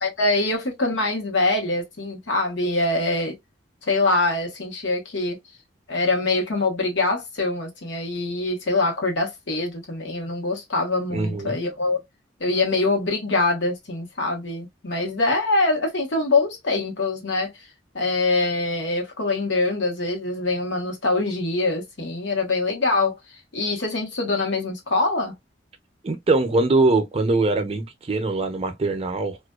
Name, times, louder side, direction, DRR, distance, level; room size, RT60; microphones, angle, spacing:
voice 1, 0.0-3.4 3.8-5.4 5.9-12.0 12.4-17.7 17.9-23.2 23.5-25.3, left 2 dB, 85° left, 1.0 m, -24 dB
voice 2, 11.1-11.6 26.0-29.4, right 2 dB, 35° right, 0.5 m, -22 dB
2.4 x 2.2 x 2.3 m
head